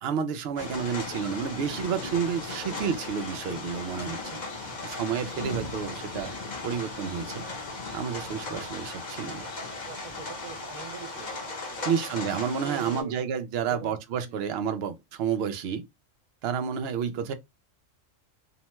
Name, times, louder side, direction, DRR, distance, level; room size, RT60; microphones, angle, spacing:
voice 1, 0.0-4.4 4.8-6.3 6.6-7.5 7.9-9.5 11.9-15.8 16.4-17.3, right 7 dB, 65° right, 0.7 m, -30 dB
sound 1, 0.6-13.0, left 3 dB, 40° left, 0.8 m, -37 dB
voice 2, 8.2-8.6 9.8-11.9 12.6-13.3 13.7-14.6, right 7 dB, 85° right, 1.0 m, -43 dB
2.7 x 2.1 x 2.9 m
omnidirectional pair, 1.3 m